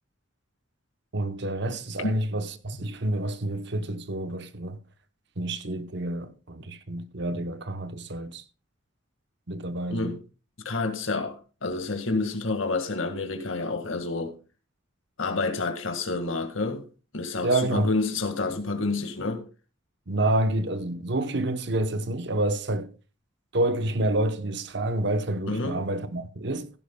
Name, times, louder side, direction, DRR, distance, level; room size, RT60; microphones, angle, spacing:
voice 1, 1.1-4.8 5.4-8.4 9.5-10.2 17.4-17.9 20.1-22.9 23.5-26.7, right 1 dB, 55° right, 0.9 m, -28 dB
voice 2, 1.7-2.1 9.9-10.2 10.7-14.3 15.2-16.8 17.1-19.4 25.5-25.8, left 3 dB, 75° left, 1.8 m, -29 dB
16.5 x 11.0 x 2.3 m
head